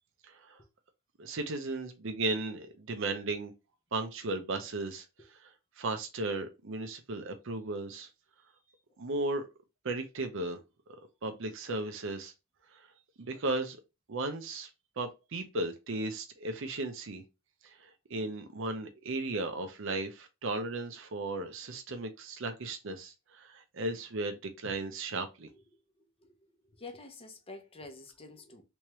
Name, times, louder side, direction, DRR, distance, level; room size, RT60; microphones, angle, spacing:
voice 1, 0.3-0.6 1.2-3.5 3.9-5.1 5.4-8.1 9.0-9.5 9.8-10.6 11.2-12.3 12.7-12.8 13.2-13.8 14.1-14.7 15.0-17.2 17.6-25.5, right 2 dB, 65° right, 0.7 m, -35 dB
voice 2, 26.7-28.6, left 3 dB, 30° left, 0.8 m, -48 dB
3.5 x 3.1 x 3.0 m
head